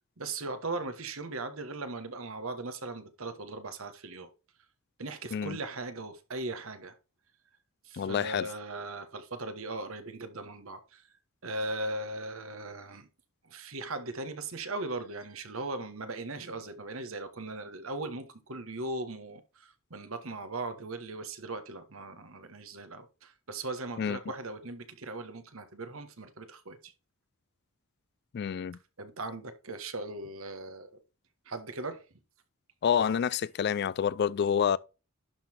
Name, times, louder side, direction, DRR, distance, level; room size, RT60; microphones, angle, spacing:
voice 1, 0.2-4.3 5.0-6.9 7.8-11.1 11.4-13.1 13.4-26.9 29.0-30.9 31.4-32.0, right 2 dB, 70° right, 1.3 m, -38 dB
voice 2, 7.9-8.5 24.0-24.2 28.3-28.8 32.8-34.8, left 7 dB, 50° left, 0.3 m, -28 dB
11.5 x 3.9 x 4.4 m
head